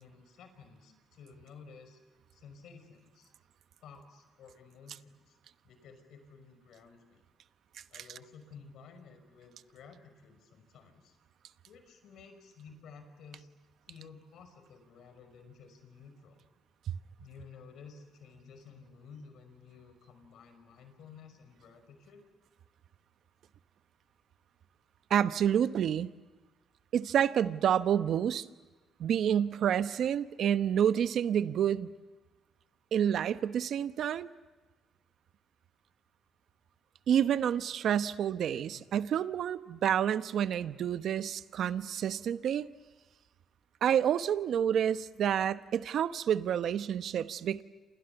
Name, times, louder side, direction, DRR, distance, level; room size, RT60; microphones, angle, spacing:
voice 1, 0.0-2.0 2.3-3.3 3.8-5.4 5.6-7.2 7.9-11.2 11.6-13.5 13.9-16.4 17.2-22.2 38.7-39.1, left 5 dB, 75° left, 8 dB, 5.6 m, -53 dB
voice 2, 25.1-26.1 26.9-28.5 29.0-31.9 32.9-34.3 37.1-42.7 43.8-47.6, right 9 dB, 70° right, 13 dB, 1.0 m, -29 dB
28.0 x 28.0 x 7.0 m, 1.2 s
cardioid pair, 90°, 0 cm